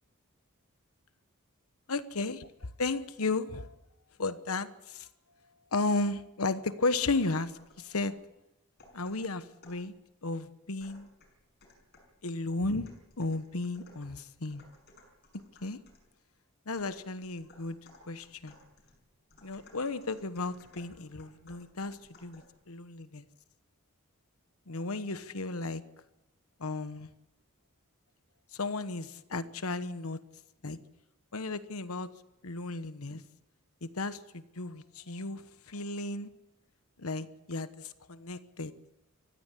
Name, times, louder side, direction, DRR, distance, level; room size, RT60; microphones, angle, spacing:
voice 1, 1.9-3.7 4.2-5.1 5.7-8.2 8.9-9.9 10.2-11.1 12.2-12.9 13.2-14.6 15.6-15.8 16.7-17.8 18.1-18.6 19.4-23.2 24.7-25.8 26.6-27.1 28.5-30.2 30.6-30.8 31.3-32.1 32.4-33.2 33.8-36.3 37.0-38.7, left 3 dB, 85° left, 13 dB, 1.2 m, -34 dB
sound 1, 7.4-8.2 8.8-9.9 10.8-12.2 12.8-16.1 16.8-22.6, left 1 dB, 50° left, 6.2 m, -59 dB
24.0 x 15.5 x 8.4 m, 0.94 s
head